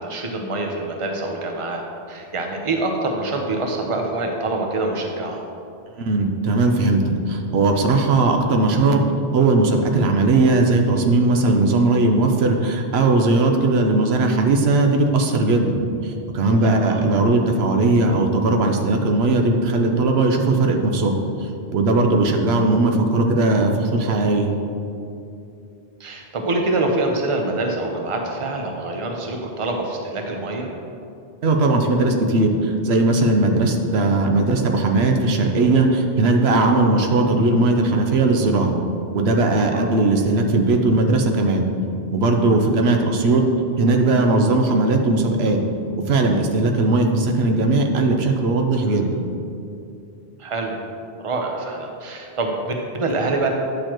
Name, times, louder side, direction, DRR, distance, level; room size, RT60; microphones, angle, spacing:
voice 1, 0.0-1.8 2.1-5.4 16.6-17.0 26.0-30.7 39.7-39.9 48.8-49.2 50.4-50.8 51.2-53.5, right 2 dB, 35° right, 2 dB, 0.8 m, -25 dB
voice 2, 6.0-7.0 7.3-9.0 9.3-21.1 21.4-24.5 31.4-38.7 39.1-41.7 42.1-43.4 43.8-45.6 46.1-49.1, right 2 dB, 85° right, 3 dB, 1.0 m, -18 dB
9.7 x 6.6 x 3.0 m, 2.6 s
omnidirectional pair, 1.0 m